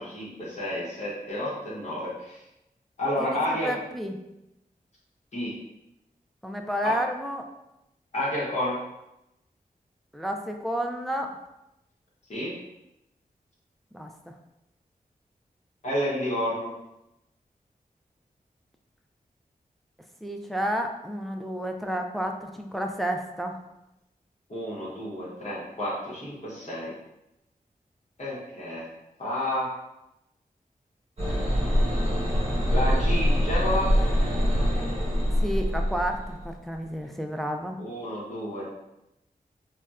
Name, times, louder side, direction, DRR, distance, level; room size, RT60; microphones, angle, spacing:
voice 1, 0.0-2.4 3.0-3.7 5.3-5.5 6.8-6.9 8.1-8.8 12.3-12.5 15.8-16.7 24.5-26.9 28.2-28.9 29.2-29.7 31.9-32.0 32.7-33.9 37.8-38.7, left 1 dB, 50° left, -7 dB, 0.9 m, -30 dB
voice 2, 3.2-4.2 6.4-7.5 10.1-11.3 13.9-14.1 20.2-23.6 35.4-37.8, equal, ahead, 3 dB, 0.3 m, -31 dB
sound 1, 31.2-36.5, equal, 45° right, 1.1 m, -24 dB
4.0 x 2.2 x 2.3 m, 0.88 s
wide cardioid pair, 80°, 15 cm